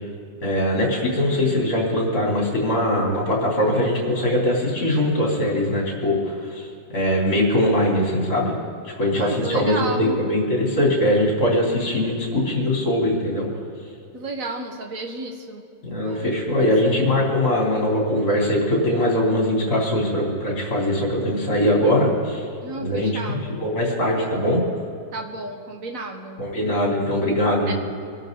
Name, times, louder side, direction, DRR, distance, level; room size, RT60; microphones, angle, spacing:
voice 1, 0.4-6.7 6.9-8.5 8.8-13.5 15.8-22.4 22.7-24.6 26.4-27.7, left 1 dB, 50° left, -3 dB, 4.1 m, -21 dB
voice 2, 9.2-10.2 14.1-15.6 16.0-17.1 22.6-23.6 25.1-26.4 27.7-27.8, right 3 dB, 45° right, 2 dB, 1.7 m, -32 dB
24.5 x 12.5 x 4.0 m, 2.5 s
omnidirectional pair, 2.2 m